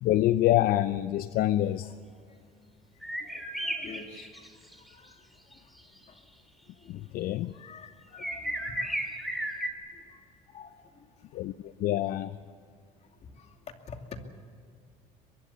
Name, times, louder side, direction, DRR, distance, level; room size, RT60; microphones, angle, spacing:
voice 1, 0.0-1.9 7.1-7.5 11.3-12.3, left 14 dB, 65° left, 0.7 m, -26 dB
sound 1, 3.0-4.7 6.0-6.1 8.2-9.7, right 1 dB, ahead, 2.8 m, -34 dB
voice 2, 3.2-4.3 4.9-5.1 6.8-6.9 7.5-8.9 10.5-10.7 11.9-12.1 13.4-13.5 13.9-14.0, left 5 dB, 40° left, 2.6 m, -47 dB
23.0 x 23.0 x 7.1 m
cardioid pair, 115°, 17 cm